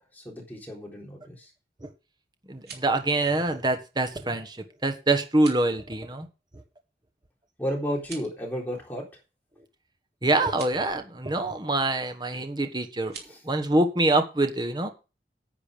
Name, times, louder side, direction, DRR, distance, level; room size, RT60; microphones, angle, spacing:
voice 1, 0.1-1.5 7.6-9.1 13.3-13.4, equal, 10° left, 3.8 m, -33 dB
sound 1, 2.4-3.0 5.3-5.7 7.9-8.4 10.4-10.8 13.0-13.3, right 6 dB, 60° right, 3.4 m, -44 dB
voice 2, 2.5-4.6 4.8-6.3 10.2-13.2 13.4-14.9, right 2 dB, 25° right, 1.2 m, -25 dB
10.0 x 8.5 x 5.1 m
head